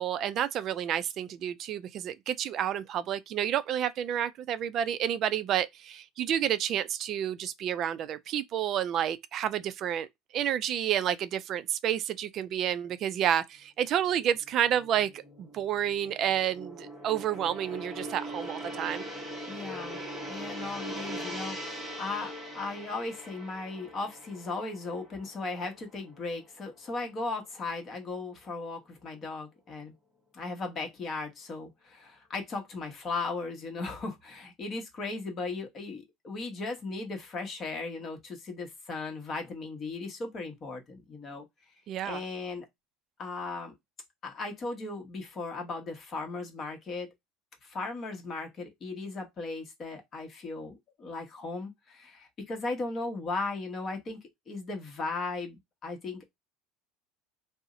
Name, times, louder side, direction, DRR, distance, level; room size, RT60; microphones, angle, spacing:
voice 1, 0.0-10.1 10.3-19.0 41.9-42.2, right 10 dB, 45° right, 0.3 m, -30 dB
Gong, 14.2-26.6 27.0-27.2, equal, ahead, 0.9 m, -41 dB
voice 2, 19.5-20.0 20.3-29.9 30.3-41.5 42.0-42.6 43.2-43.7 44.2-47.1 47.6-56.2, left 3 dB, 30° left, 1.0 m, -37 dB
2.6 x 2.0 x 3.7 m
supercardioid pair, 135°, 0 cm